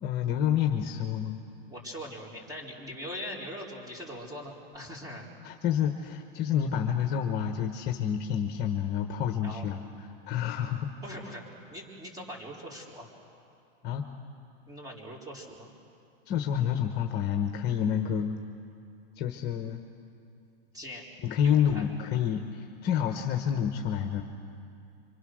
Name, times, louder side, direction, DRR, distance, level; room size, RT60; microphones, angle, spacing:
voice 1, 0.0-1.4 5.4-10.9 13.8-14.0 16.3-18.4 19.2-19.8 21.2-24.2, left 9 dB, 35° left, 4 dB, 1.3 m, -28 dB
voice 2, 1.7-5.3 9.4-9.7 11.0-11.4 11.7-13.1 14.7-15.7 20.7-21.0 21.4-21.8, equal, 10° right, -2 dB, 4.4 m, -41 dB
26.5 x 25.0 x 6.4 m, 2.5 s
supercardioid pair, 145°, 30 cm